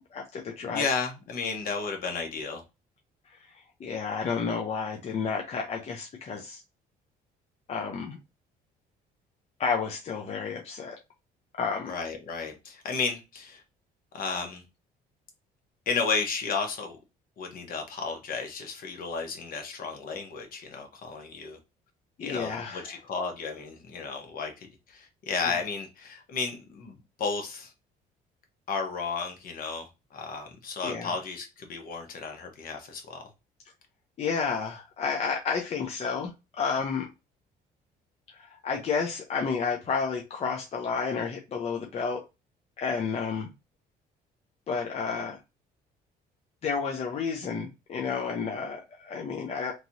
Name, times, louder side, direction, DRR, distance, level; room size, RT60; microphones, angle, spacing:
voice 1, 0.1-0.9 3.3-3.5 3.8-6.6 7.7-8.2 9.6-11.0 11.6-11.9 22.2-23.0 30.8-31.1 34.2-37.1 38.3-42.2 42.8-43.5 44.7-45.4 46.6-49.7, left 5 dB, 40° left, 0.6 m, -31 dB
voice 2, 0.7-2.6 11.9-13.6 14.1-14.6 15.9-17.0 17.4-21.6 22.2-27.7 28.7-33.2, left 5 dB, 55° left, 1.0 m, -33 dB
3.0 x 2.8 x 2.6 m
cardioid pair, 110°, 17 cm